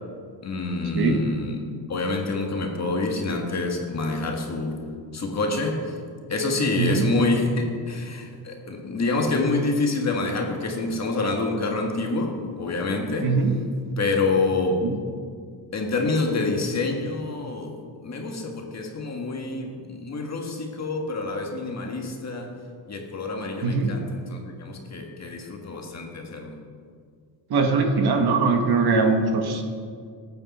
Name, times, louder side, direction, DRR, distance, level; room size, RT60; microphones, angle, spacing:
voice 1, 0.4-1.6 1.9-4.8 5.1-5.9 6.3-13.3 14.0-14.8 15.7-17.7 18.0-22.5 22.9-26.6, left 3 dB, 35° left, 2 dB, 1.7 m, -27 dB
voice 2, 13.2-13.5 14.8-15.0 23.6-23.9 27.5-29.6, right 4 dB, 55° right, 4 dB, 1.5 m, -21 dB
19.0 x 8.7 x 4.2 m, 2.1 s
cardioid pair, 160°, 45 cm